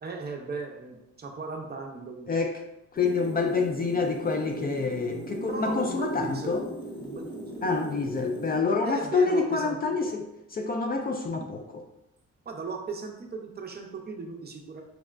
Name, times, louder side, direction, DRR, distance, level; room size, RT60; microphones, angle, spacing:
voice 1, 0.0-2.3 5.3-6.6 7.0-7.7 8.8-10.0 12.5-14.8, right 4 dB, 35° right, 2 dB, 0.6 m, -37 dB
voice 2, 2.3-2.6 2.9-6.6 7.6-11.6, left 4 dB, 30° left, 3 dB, 0.4 m, -27 dB
sound 1, 3.0-8.6, right 1 dB, 15° left, 1.0 m, -39 dB
5.9 x 2.1 x 2.4 m, 0.87 s
cardioid pair, 90°, 30 cm